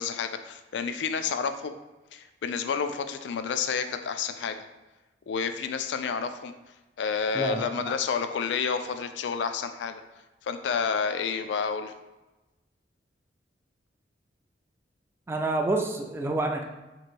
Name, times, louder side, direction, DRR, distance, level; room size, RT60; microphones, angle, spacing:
voice 1, 0.0-1.8 2.1-4.6 5.3-6.5 7.0-10.0 10.4-11.9, left 6 dB, 80° left, 9 dB, 0.3 m, -30 dB
voice 2, 7.3-7.9 15.3-16.6, right 2 dB, 15° right, 2 dB, 0.3 m, -28 dB
3.1 x 2.5 x 4.3 m, 1.1 s
head